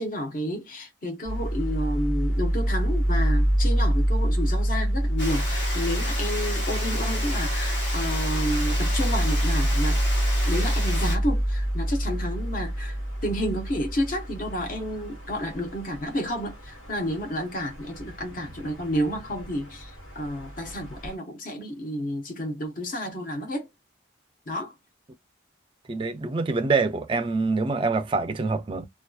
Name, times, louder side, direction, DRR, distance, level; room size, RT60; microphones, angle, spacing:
voice 1, 0.0-10.0 10.4-23.7 24.5-24.7, equal, 45° left, 0.7 m, -30 dB
sound 1, 1.2-21.1, equal, 90° left, 1.2 m, -27 dB
Water, 5.2-11.2, left 1 dB, 65° left, 1.3 m, -33 dB
voice 2, 25.9-28.9, right 3 dB, 25° right, 0.3 m, -25 dB
2.6 x 2.3 x 2.3 m
head